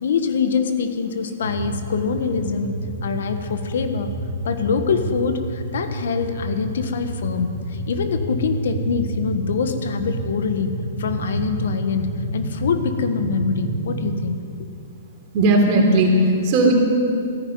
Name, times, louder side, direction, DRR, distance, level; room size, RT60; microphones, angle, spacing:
voice 1, 0.0-4.1 4.4-14.7, left 6 dB, 70° left, 8 dB, 1.4 m, -24 dB
sound 1, 1.4-14.3, right 2 dB, 80° right, 2.0 m, -29 dB
voice 2, 15.3-16.7, right 1 dB, 45° right, 1 dB, 3.4 m, -16 dB
14.5 x 10.5 x 9.4 m, 2.5 s
hypercardioid pair, 120°, 0 cm